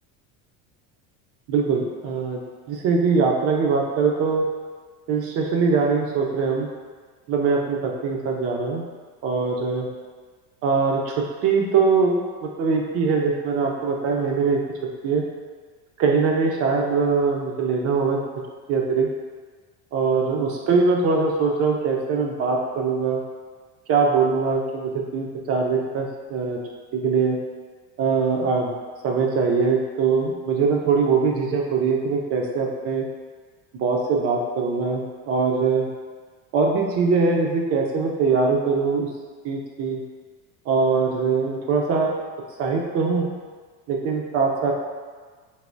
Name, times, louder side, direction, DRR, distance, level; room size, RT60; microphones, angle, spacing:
voice 1, 1.5-2.4 2.7-4.5 5.1-6.7 7.3-8.8 9.2-9.9 10.6-14.6 15.0-15.2 16.0-18.2 18.7-19.1 19.9-23.2 23.9-26.6 26.9-27.4 28.0-28.7 29.0-33.0 33.7-35.9 36.5-39.1 39.4-40.0 40.7-42.1 42.6-43.3 43.9-44.7, right 4 dB, 40° right, 0 dB, 0.5 m, -22 dB
3.3 x 2.6 x 2.6 m, 1.5 s
supercardioid pair, 125°, 38 cm